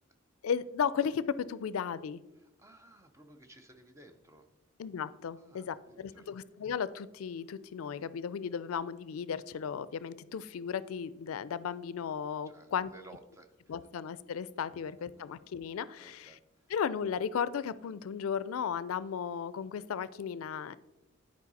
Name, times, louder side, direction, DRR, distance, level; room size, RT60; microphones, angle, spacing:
voice 1, 0.4-2.2 4.8-12.9 13.7-16.3 16.7-20.8, left 7 dB, 80° left, 17 dB, 0.4 m, -35 dB
voice 2, 2.3-4.5 5.4-6.3 12.4-13.7 16.0-16.7, right 2 dB, 15° right, 6 dB, 0.6 m, -57 dB
11.0 x 4.7 x 4.0 m, 0.98 s
head